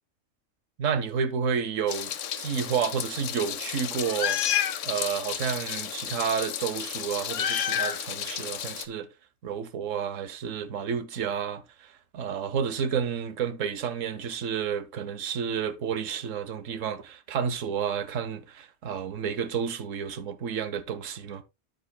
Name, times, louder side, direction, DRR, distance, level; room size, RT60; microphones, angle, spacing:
voice 1, 0.8-4.4 4.8-9.1 9.4-21.4, right 7 dB, 80° right, 1.3 m, -30 dB
Meow, 1.9-8.9, left 9 dB, 75° left, 1.1 m, -31 dB
9.8 x 8.7 x 2.2 m
omnidirectional pair, 1.3 m